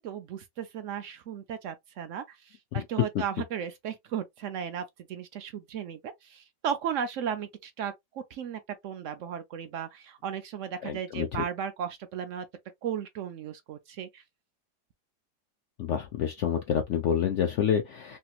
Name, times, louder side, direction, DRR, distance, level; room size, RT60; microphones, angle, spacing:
voice 1, 0.0-2.4 2.7-12.5 12.8-14.2, right 8 dB, 75° right, 0.7 m, -35 dB
voice 2, 2.7-3.1 10.8-11.4 15.8-18.2, left 9 dB, 80° left, 0.6 m, -28 dB
3.3 x 2.8 x 2.3 m
omnidirectional pair, 1.8 m